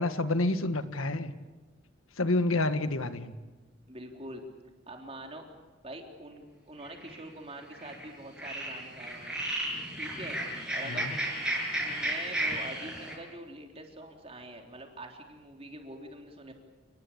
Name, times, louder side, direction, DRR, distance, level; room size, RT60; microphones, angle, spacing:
voice 1, 0.0-1.3 2.2-3.3 10.8-11.2, left 2 dB, 90° left, 10 dB, 1.6 m, -29 dB
voice 2, 3.9-4.5 4.9-5.5 5.8-9.4 9.9-10.4 10.7-11.3 11.8-16.5, right 1 dB, 30° right, 2 dB, 3.6 m, -45 dB
sound 1, 6.8-7.2 7.7-8.1 8.4-13.2, right 1 dB, 5° right, 6.4 m, -33 dB
29.5 x 20.0 x 8.6 m, 1.3 s
head